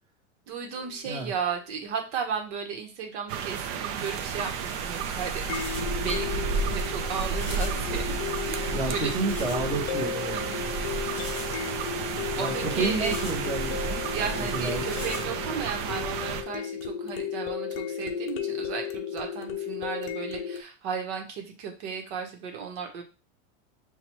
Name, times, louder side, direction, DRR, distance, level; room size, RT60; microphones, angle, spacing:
voice 1, 0.5-8.2 8.5-9.1 10.3-10.6 12.4-13.2 14.1-23.0, right 6 dB, 65° right, 3 dB, 1.1 m, -34 dB
sound 1, 0.8-0.9 5.5-20.6, left 8 dB, 40° left, 0.5 m, -34 dB
sound 2, 3.3-16.4, right 6 dB, 50° right, 0.5 m, -32 dB
sound 3, 3.9-15.2, equal, 5° left, 1.3 m, -43 dB
voice 2, 8.7-10.4 12.4-14.0 14.4-14.8, right 2 dB, 10° right, -1 dB, 0.9 m, -30 dB
5.7 x 2.3 x 3.0 m, 0.33 s
supercardioid pair, 150°, 35 cm